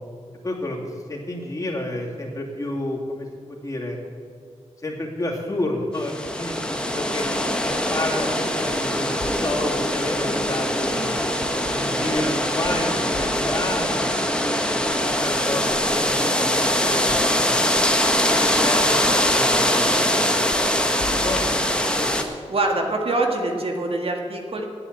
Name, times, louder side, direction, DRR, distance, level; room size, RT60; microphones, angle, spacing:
voice 1, 0.4-4.0 4.8-7.3 7.9-11.2 11.7-14.2 14.7-17.5 18.1-20.4 20.7-20.9 21.2-22.1, left 1 dB, 30° left, -2 dB, 3.0 m, -30 dB
sound 1, 6.0-22.2, left 1 dB, 10° left, 1.3 m, -22 dB
sound 2, 6.2-7.8 8.2-8.3 8.7-8.8 9.2-9.3 9.7-9.8 10.2-11.7 12.1-12.2 12.6-12.8 13.1-15.6 16.1-16.2 16.6-16.7 17.1-17.2 17.6-17.7 18.0-19.6 20.0-20.1 20.5-20.6 21.0-21.8, left 3 dB, 65° left, 3.4 m, -39 dB
voice 2, 22.5-24.6, right 2 dB, 55° right, 2 dB, 2.0 m, -24 dB
10.0 x 9.6 x 8.5 m, 2.2 s
cardioid pair, 65°, 12 cm